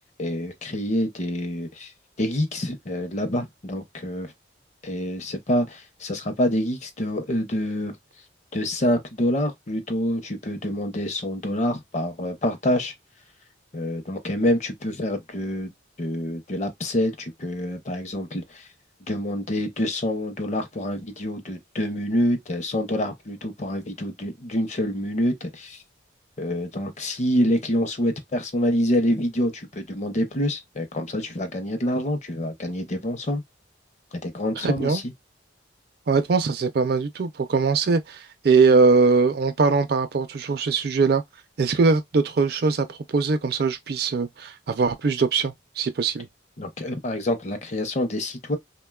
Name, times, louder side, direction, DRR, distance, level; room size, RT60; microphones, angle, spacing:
voice 1, 0.2-1.9 2.2-4.3 4.8-7.9 8.5-12.9 13.7-15.7 16.0-18.7 19.1-25.8 26.4-33.4 34.2-35.1 46.6-48.6, left 1 dB, 40° left, 0.6 m, -26 dB
voice 2, 34.6-35.0 36.1-41.2 41.6-46.3, right 4 dB, 55° right, 0.4 m, -21 dB
3.5 x 2.2 x 2.2 m
head